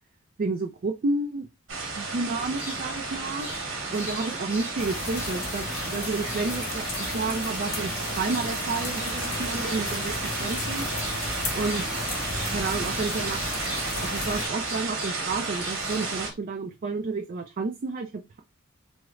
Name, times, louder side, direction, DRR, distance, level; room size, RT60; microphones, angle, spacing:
voice 1, 0.4-1.5 2.0-3.5 3.9-7.9 8.2-10.1 10.4-10.9 11.5-12.2 12.5-18.4, right 3 dB, 45° right, 0.4 m, -31 dB
sound 1, 1.7-16.3, right 3 dB, 70° right, 1.2 m, -33 dB
sound 2, 2.3-16.3, equal, 10° right, 0.8 m, -41 dB
sound 3, 4.8-14.5, left 2 dB, 50° left, 1.0 m, -34 dB
3.5 x 2.0 x 3.1 m
head